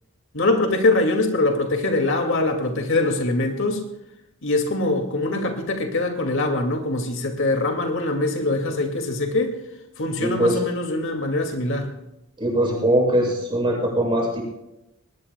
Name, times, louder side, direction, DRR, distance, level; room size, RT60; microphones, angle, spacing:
voice 1, 0.3-3.8 4.4-9.5 10.0-11.9, left 2 dB, 60° left, 4 dB, 2.3 m, -23 dB
voice 2, 10.2-10.6 12.4-14.4, right 1 dB, 25° right, -3 dB, 7.4 m, -21 dB
21.5 x 19.5 x 2.3 m, 0.88 s
head